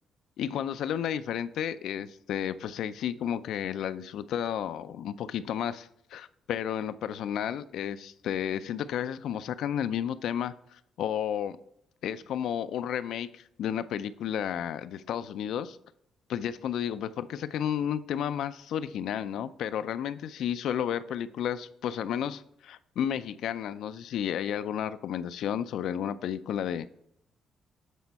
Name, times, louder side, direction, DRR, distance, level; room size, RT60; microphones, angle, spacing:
voice 1, 0.4-11.6 12.0-15.8 16.3-26.9, left 9 dB, 75° left, 13 dB, 0.4 m, -32 dB
8.2 x 4.3 x 4.1 m, 0.73 s
cardioid pair, 90°, 0 cm